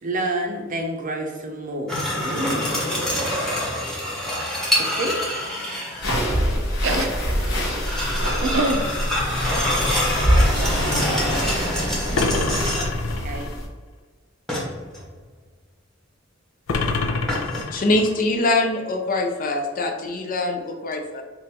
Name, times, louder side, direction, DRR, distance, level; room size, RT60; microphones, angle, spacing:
voice 1, 0.0-2.8 4.8-5.3 13.0-13.5, right 1 dB, 40° right, 2 dB, 0.6 m, -29 dB
sound 1, 1.9-6.1 7.3-13.1 14.5-15.1 17.3-17.6, left 1 dB, ahead, 1.0 m, -26 dB
sound 2, 6.0-13.7, equal, 65° left, 1.2 m, -24 dB
voice 2, 8.4-8.8 10.2-11.5, right 2 dB, 80° right, 4 dB, 0.6 m, -27 dB
sound 3, 12.1-13.6 16.7-18.2, left 3 dB, 90° left, 0.5 m, -26 dB
voice 3, 17.7-21.2, left 2 dB, 45° left, 3 dB, 0.5 m, -23 dB
5.3 x 2.5 x 2.9 m, 1.4 s
head